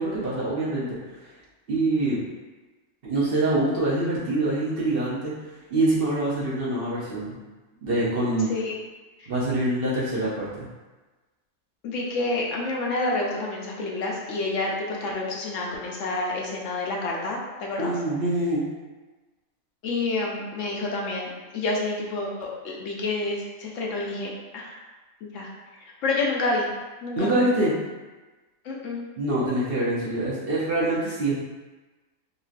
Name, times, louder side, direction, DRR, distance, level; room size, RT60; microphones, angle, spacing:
voice 1, 0.0-1.4 1.7-2.2 3.0-5.3 5.7-7.4 7.8-8.5 9.3-10.7 17.8-18.6 27.2-27.7 29.2-31.4, right 2 dB, 55° right, -8 dB, 0.8 m, -25 dB
voice 2, 11.8-17.9 19.8-24.8 25.2-25.5 26.0-26.7 27.0-27.3 28.6-29.0, left 2 dB, 70° left, -2 dB, 0.9 m, -28 dB
3.0 x 2.7 x 2.4 m, 1.2 s
omnidirectional pair, 1.4 m